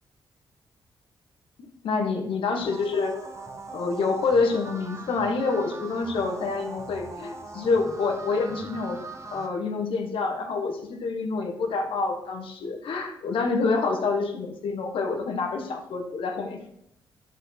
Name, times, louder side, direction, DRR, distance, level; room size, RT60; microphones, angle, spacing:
voice 1, 1.6-3.3 3.7-9.0 9.3-16.7, left 4 dB, 75° left, 4 dB, 1.4 m, -27 dB
sound 1, 2.6-9.5, right 3 dB, 35° right, 1.2 m, -41 dB
11.0 x 4.5 x 3.8 m, 0.73 s
cardioid pair, 75°, 9 cm